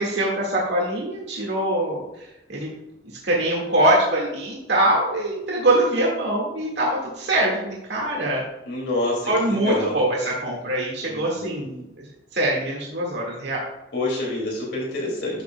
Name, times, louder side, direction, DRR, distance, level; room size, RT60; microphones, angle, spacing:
voice 1, 0.0-2.7 3.2-8.4 9.3-12.1 12.3-13.7, right 1 dB, 75° right, -3 dB, 1.9 m, -23 dB
voice 2, 8.6-10.1 11.0-11.7 13.9-15.4, left 2 dB, 75° left, -3 dB, 2.5 m, -27 dB
11.5 x 6.9 x 2.3 m, 0.90 s
head